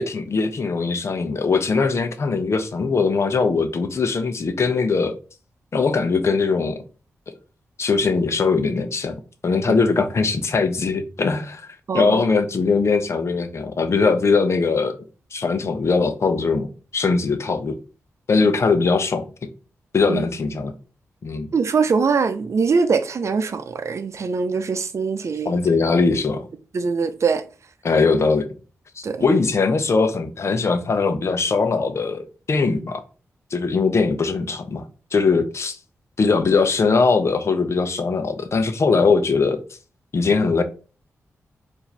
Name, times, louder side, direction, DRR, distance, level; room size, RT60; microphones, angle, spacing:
voice 1, 0.0-5.1 5.7-6.8 7.8-9.2 9.4-11.7 11.9-15.0 15.3-16.7 16.9-17.8 18.3-19.3 19.9-20.7 21.2-21.5 25.4-26.5 27.8-28.5 29.0-33.0 33.5-34.9 35.1-35.8 36.2-39.6 40.1-40.6, left 4 dB, 55° left, 0.8 m, -20 dB
voice 2, 11.9-12.2 20.1-20.2 21.5-25.6 26.7-27.4 29.0-29.2, right 5 dB, 60° right, 0.6 m, -22 dB
4.7 x 2.7 x 3.3 m
cardioid pair, 55°, 6 cm